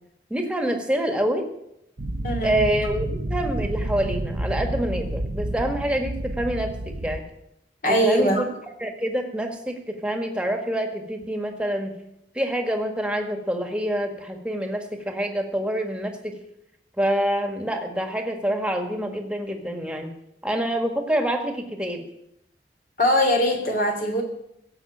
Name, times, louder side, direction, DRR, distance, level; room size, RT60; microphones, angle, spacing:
voice 1, 0.3-1.5 2.4-7.2 7.9-8.5 8.8-11.9 12.3-16.3 17.0-20.1 20.4-22.0, right 1 dB, 5° right, 4 dB, 1.8 m, -26 dB
All comments, 2.0-7.2, right 1 dB, 85° right, 1.1 m, -29 dB
voice 2, 2.2-2.6 7.8-8.4 23.0-24.2, equal, 50° left, 3 dB, 3.2 m, -21 dB
16.5 x 7.9 x 8.7 m, 0.80 s
head